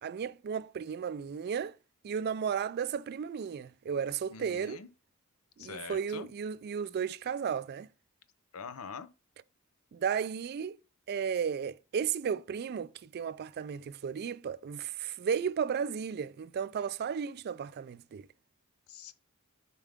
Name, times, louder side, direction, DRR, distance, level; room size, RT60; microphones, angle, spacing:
voice 1, 0.0-1.7 2.0-4.8 5.6-7.9 9.9-10.8 11.1-18.3, right 7 dB, 50° right, 0.3 m, -34 dB
voice 2, 4.3-4.9 5.6-6.3 8.5-9.1 18.9-19.1, left 5 dB, 85° left, 0.7 m, -44 dB
7.2 x 4.6 x 3.5 m
head